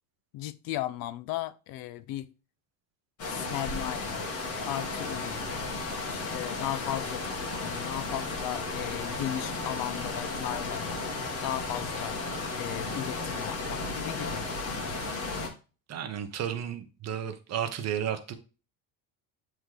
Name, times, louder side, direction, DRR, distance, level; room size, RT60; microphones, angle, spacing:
voice 1, 0.3-2.3 3.3-4.3 4.7-5.5 6.1-12.2 12.6-14.4, left 14 dB, 60° left, 0.6 m, -36 dB
sound 1, 3.2-15.5, left 3 dB, 35° left, 1.7 m, -34 dB
voice 2, 15.9-18.3, right 9 dB, 40° right, 1.1 m, -33 dB
8.1 x 3.8 x 3.2 m
cardioid pair, 145°, 41 cm